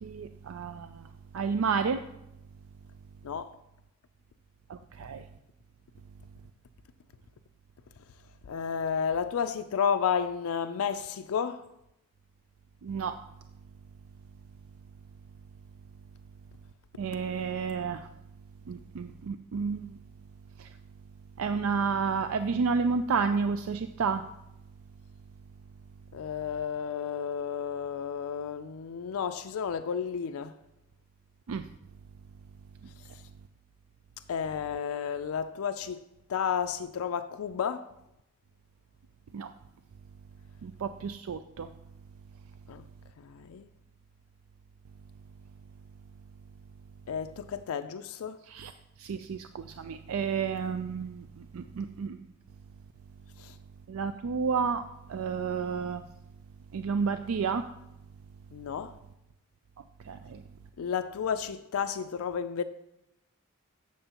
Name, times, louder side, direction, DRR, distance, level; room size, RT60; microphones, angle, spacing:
voice 1, 0.0-1.1 1.3-2.0 4.7-5.2 12.8-13.1 17.0-18.1 18.7-20.0 20.6-20.7 21.4-24.2 31.5-31.6 39.3-39.5 40.6-41.7 48.5-48.7 49.0-52.3 53.9-54.8 55.1-56.0 56.7-57.6 60.1-60.4, right 5 dB, 80° right, 0.4 m, -31 dB
voice 2, 3.2-3.6 8.5-11.7 26.1-30.5 34.3-36.0 36.3-37.9 42.7-42.8 43.2-43.7 47.1-48.4 53.4-53.5 58.5-59.0 60.8-62.6, left 7 dB, 85° left, 0.4 m, -32 dB
12.0 x 7.7 x 2.9 m
head